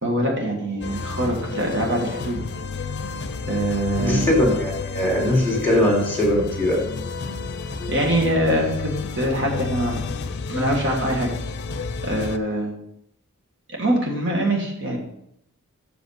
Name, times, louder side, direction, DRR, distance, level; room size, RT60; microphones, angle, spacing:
voice 1, 0.0-2.4 3.5-4.3 7.9-10.0 10.5-11.3 12.0-12.7 13.8-15.0, right 1 dB, 60° right, -1 dB, 1.8 m, -23 dB
sound 1, 0.8-12.4, left 4 dB, 55° left, 0.5 m, -31 dB
voice 2, 4.0-6.8, left 1 dB, 10° left, -1 dB, 2.4 m, -20 dB
6.6 x 5.2 x 6.5 m, 0.74 s
head